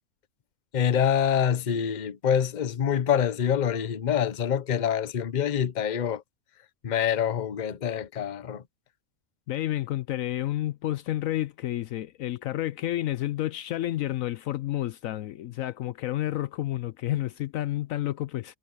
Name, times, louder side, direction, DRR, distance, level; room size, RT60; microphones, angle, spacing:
voice 1, 0.7-6.2 6.8-8.6, left 8 dB, 40° left, 0.8 m, -26 dB
voice 2, 9.5-18.6, left 14 dB, 70° left, 0.9 m, -30 dB
omnidirectional pair, 1.5 m